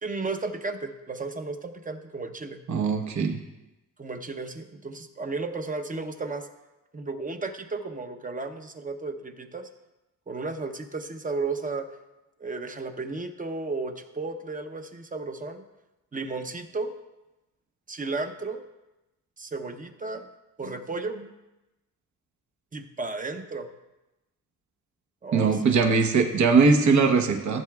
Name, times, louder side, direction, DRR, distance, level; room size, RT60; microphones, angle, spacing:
voice 1, 0.0-2.6 4.0-6.5 6.9-9.7 10.3-11.9 12.4-15.6 16.1-16.9 17.9-18.6 19.4-20.3 20.6-21.3 22.7-23.7 25.2-25.6, right 3 dB, 25° right, 6 dB, 0.7 m, -33 dB
voice 2, 2.7-3.4 25.3-27.6, right 4 dB, 55° right, 3 dB, 1.0 m, -21 dB
15.0 x 7.5 x 2.4 m, 0.99 s
cardioid pair, 110°, 34 cm